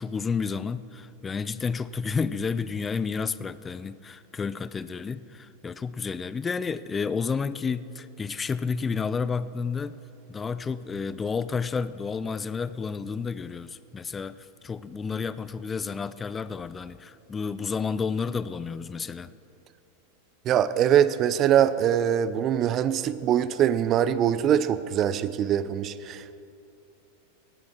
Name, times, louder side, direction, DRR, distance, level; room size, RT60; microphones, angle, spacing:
voice 1, 0.0-10.0 10.3-19.3, left 5 dB, 20° left, 16 dB, 0.4 m, -31 dB
voice 2, 20.5-26.4, right 10 dB, 35° right, 15 dB, 0.5 m, -23 dB
19.0 x 11.5 x 4.5 m, 2.7 s
figure-of-eight pair, 90°, 0 cm